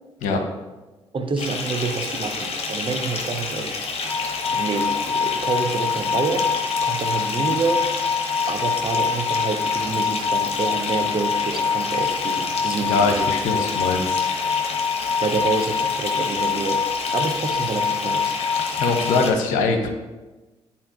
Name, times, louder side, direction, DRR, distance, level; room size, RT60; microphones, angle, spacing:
voice 1, 1.1-3.8 4.5-6.5 6.8-8.0 8.5-13.3 15.2-16.8 17.1-18.4, right 4 dB, 40° right, 6 dB, 0.9 m, -27 dB
Bathtub (filling or washing) / Fill (with liquid), 1.4-19.3, left 3 dB, 50° left, 1.2 m, -30 dB
sound 1, 4.1-19.3, left 6 dB, 10° left, 0.4 m, -25 dB
voice 2, 12.8-14.2 18.7-19.9, left 3 dB, 70° left, 5 dB, 0.8 m, -22 dB
11.0 x 4.3 x 2.5 m, 1.2 s
hypercardioid pair, 45°, 14 cm